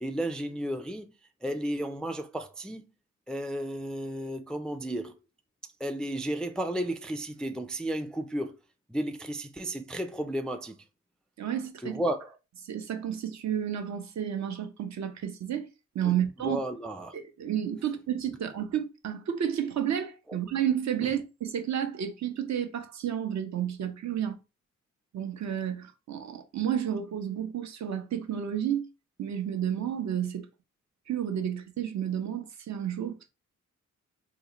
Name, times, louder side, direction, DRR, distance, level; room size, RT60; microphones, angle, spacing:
voice 1, 0.0-1.1 1.4-2.8 3.3-5.1 5.8-8.6 8.9-10.8 11.8-12.4 16.1-16.2 16.4-17.1 20.3-20.4 21.0-21.1, right 1 dB, 5° left, 0.3 m, -33 dB
voice 2, 11.4-12.0 12.6-15.7 15.9-16.6 17.1-24.4 25.1-28.8 29.2-30.5 31.1-33.3, right 9 dB, 60° right, 0.7 m, -31 dB
3.8 x 2.4 x 2.9 m
cardioid pair, 90°, 31 cm